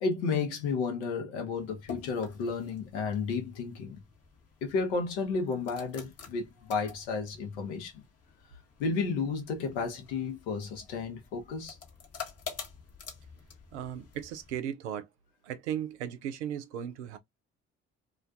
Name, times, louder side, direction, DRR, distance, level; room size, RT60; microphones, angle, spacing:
voice 1, 0.0-4.0 4.6-8.0 8.8-11.8, left 4 dB, 80° left, 0.8 m, -32 dB
sound 1, 1.5-14.6, left 6 dB, 45° left, 0.9 m, -49 dB
voice 2, 13.7-15.1 15.4-17.2, right 9 dB, 85° right, 0.5 m, -36 dB
2.4 x 2.2 x 2.4 m
hypercardioid pair, 50°, 34 cm